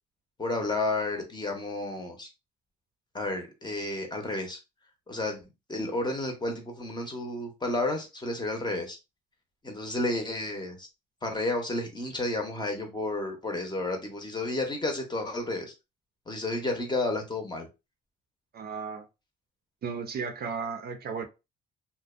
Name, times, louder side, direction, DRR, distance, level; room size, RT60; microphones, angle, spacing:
voice 1, 0.4-2.3 3.1-4.6 5.1-5.4 5.7-9.0 9.6-10.9 11.2-15.7 16.3-17.7, left 2 dB, 20° left, 0.7 m, -31 dB
voice 2, 18.5-19.1 19.8-21.2, right 5 dB, 50° right, 0.5 m, -34 dB
2.5 x 2.1 x 2.4 m
cardioid pair, 90°, 20 cm